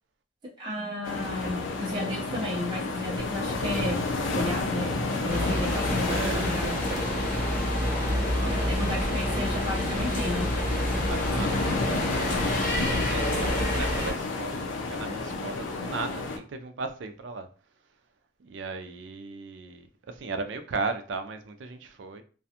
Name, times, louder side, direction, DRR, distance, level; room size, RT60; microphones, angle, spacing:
voice 1, 0.6-4.0 4.3-4.9 5.2-6.8 8.5-10.5, left 1 dB, 25° right, 0.6 m, -33 dB
sound 1, 1.0-16.4, left 3 dB, 90° left, 0.5 m, -31 dB
sound 2, 5.3-14.1, equal, 45° left, 0.6 m, -28 dB
voice 2, 5.4-7.5 8.4-9.3 10.9-14.6 14.9-17.5 18.4-22.2, right 3 dB, 75° right, 0.4 m, -37 dB
2.4 x 2.2 x 2.8 m
head